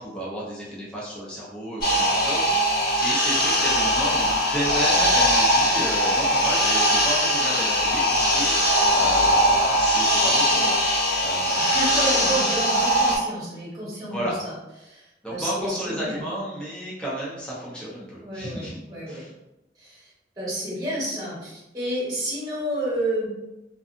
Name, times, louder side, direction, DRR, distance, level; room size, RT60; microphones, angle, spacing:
voice 1, 0.0-11.8 14.1-14.4 15.2-18.8 19.1-19.3, right 1 dB, 5° left, -8 dB, 0.7 m, -33 dB
sound 1, 1.8-13.2, equal, 55° left, 1.1 m, -21 dB
voice 2, 11.6-14.5 14.8-16.2 18.2-18.6 18.9-19.2 19.8-23.3, right 1 dB, 20° right, -7 dB, 1.2 m, -30 dB
2.5 x 2.3 x 2.5 m, 0.96 s
head